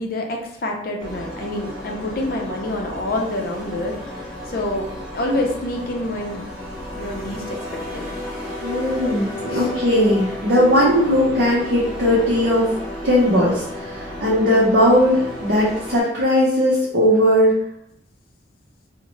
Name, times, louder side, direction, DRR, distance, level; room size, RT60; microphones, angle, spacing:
voice 1, 0.0-4.9 5.1-6.6 7.0-7.6 7.9-8.0 9.5-9.7, left 1 dB, 50° left, 1 dB, 0.5 m, -27 dB
sound 1, 1.0-16.0, left 1 dB, ahead, 1.1 m, -32 dB
voice 2, 8.6-12.7 13.0-17.5, equal, 60° right, -6 dB, 0.6 m, -18 dB
2.7 x 2.1 x 3.0 m, 0.76 s
head